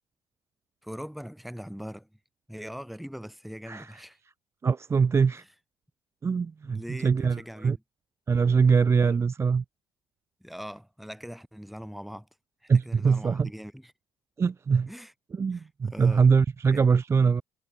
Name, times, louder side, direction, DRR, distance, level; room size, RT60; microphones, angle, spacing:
voice 1, 0.8-2.1 2.5-4.2 6.6-7.8 9.0-9.2 10.4-12.3 12.6-13.9 14.9-15.1 15.5-16.3 16.7-17.0, equal, ahead, 1.0 m, -41 dB
voice 2, 4.6-5.4 6.2-7.8 8.3-9.6 12.7-13.5 14.4-14.9 15.4-17.4, right 5 dB, 20° right, 0.4 m, -23 dB
figure-of-eight pair, 50°, 12 cm